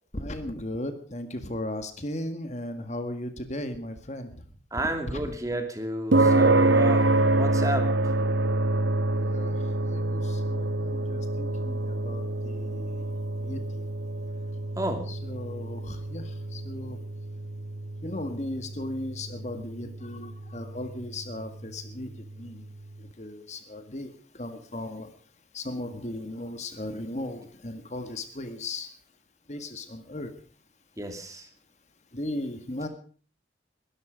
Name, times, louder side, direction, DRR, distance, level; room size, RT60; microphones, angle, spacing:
voice 1, 0.1-4.3 5.1-5.2 9.1-9.6 9.8-13.1 13.4-13.6 15.1-16.2 16.5-17.0 18.0-22.1 22.4-22.6 23.2-24.1 24.4-25.1 25.5-28.9 29.5-30.3 32.1-32.9, left 1 dB, 40° left, 8 dB, 1.7 m, -36 dB
voice 2, 4.7-7.9 14.8-15.0 31.0-31.5, right 1 dB, 20° right, 6 dB, 2.6 m, -31 dB
sound 1, 6.1-22.6, right 2 dB, 90° right, 1.3 m, -27 dB
22.0 x 13.0 x 5.1 m, 0.42 s
head